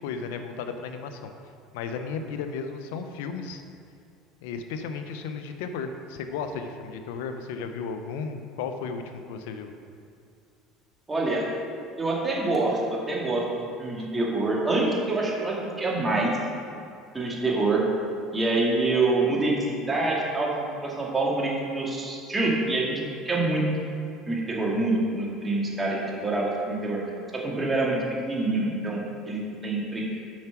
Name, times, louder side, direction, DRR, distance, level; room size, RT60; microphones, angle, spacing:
voice 1, 0.0-1.3 1.7-3.6 4.4-9.7 14.0-14.1, left 5 dB, 80° left, 7 dB, 0.7 m, -34 dB
voice 2, 11.1-11.5 12.0-16.3 17.1-17.8 18.3-23.7 24.3-27.0 27.3-30.1, right 2 dB, 20° right, -3 dB, 2.1 m, -26 dB
7.4 x 5.9 x 5.9 m, 2.3 s
supercardioid pair, 95°, 0 cm